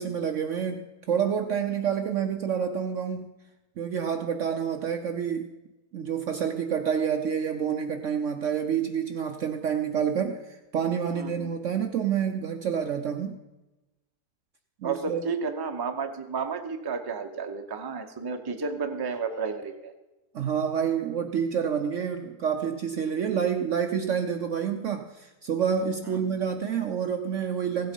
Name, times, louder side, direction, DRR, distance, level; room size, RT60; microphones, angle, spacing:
voice 1, 0.0-3.3 3.8-5.5 5.9-13.4 14.8-15.2 20.3-27.9, right 7 dB, 60° right, 6 dB, 0.8 m, -28 dB
voice 2, 11.1-11.5 14.8-19.9 26.0-26.2, right 5 dB, 20° right, 6 dB, 0.6 m, -32 dB
16.0 x 8.1 x 5.3 m, 1.1 s
omnidirectional pair, 1.8 m